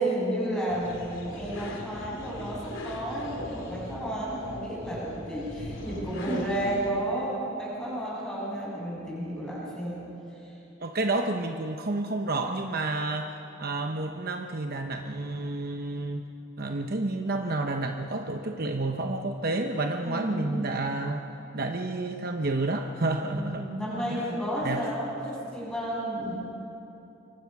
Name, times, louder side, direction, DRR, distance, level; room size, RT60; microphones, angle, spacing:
voice 1, 0.0-10.0 10.4-10.5 20.0-20.7 23.3-26.4, right 1 dB, 5° left, -7 dB, 7.5 m, -32 dB
sound 1, 0.7-6.9, left 1 dB, 65° left, 3.1 m, -40 dB
voice 2, 10.8-13.3 13.6-16.3 16.6-21.2 21.5-23.7 24.1-24.2 24.6-24.8, right 2 dB, 45° right, 5 dB, 0.9 m, -30 dB
26.0 x 22.0 x 6.0 m, 2.9 s
head